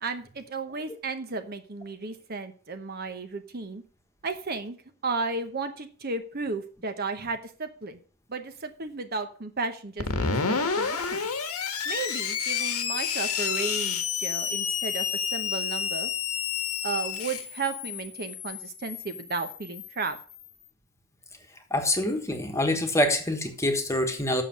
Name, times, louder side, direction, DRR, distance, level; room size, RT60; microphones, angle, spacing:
voice 1, 0.0-3.8 4.2-4.8 5.0-8.0 8.3-11.2 11.8-16.1 16.8-20.2, right 4 dB, 45° right, 8 dB, 0.9 m, -34 dB
Screech, 10.0-20.4, left 6 dB, 90° left, 1.5 m, -30 dB
voice 2, 21.7-24.4, left 1 dB, 15° left, 5 dB, 1.4 m, -25 dB
7.6 x 6.6 x 7.4 m, 0.42 s
head